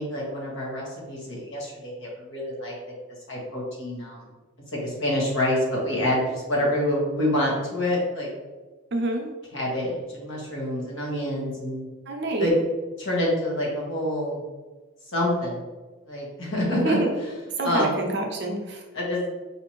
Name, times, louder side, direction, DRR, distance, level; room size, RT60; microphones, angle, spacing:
voice 1, 0.0-2.7 3.3-4.2 4.8-8.3 9.5-11.9 12.4-12.5 13.0-14.4 15.1-15.6 16.1-17.0 17.6-17.9 18.9-19.2, left 1 dB, 65° left, -4 dB, 1.4 m, -27 dB
voice 2, 8.9-9.3 12.1-12.5 16.7-17.1 17.6-18.8, right 2 dB, 50° right, 2 dB, 0.6 m, -27 dB
5.0 x 2.7 x 3.1 m, 1.2 s
head